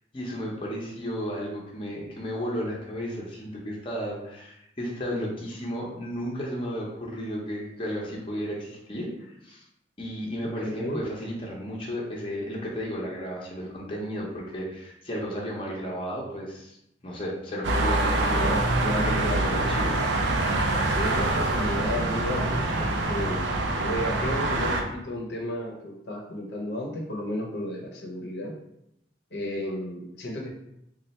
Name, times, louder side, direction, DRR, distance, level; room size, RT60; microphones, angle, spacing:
voice 1, 0.1-9.6 10.0-16.8 17.0-18.6 19.0-20.0, equal, 30° left, -3 dB, 0.7 m, -33 dB
voice 2, 10.6-11.0 18.3-19.5 20.8-23.5 23.8-28.5 29.3-30.5, left 1 dB, 70° left, -1 dB, 0.8 m, -33 dB
sound 1, 17.6-24.8, right 2 dB, 85° right, 0.5 m, -25 dB
3.2 x 2.4 x 4.1 m, 0.80 s
head